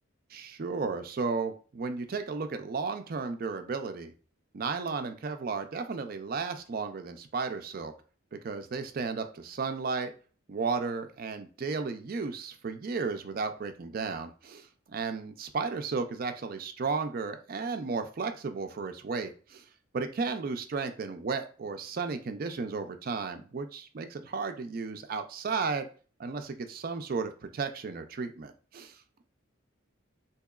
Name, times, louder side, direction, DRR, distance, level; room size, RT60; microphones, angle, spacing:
voice 1, 0.3-4.1 4.5-7.9 8.3-10.1 10.5-14.7 14.9-19.6 19.9-25.9 26.2-28.9, right 4 dB, 45° right, 8 dB, 0.4 m, -34 dB
3.8 x 2.8 x 2.3 m, 0.39 s
head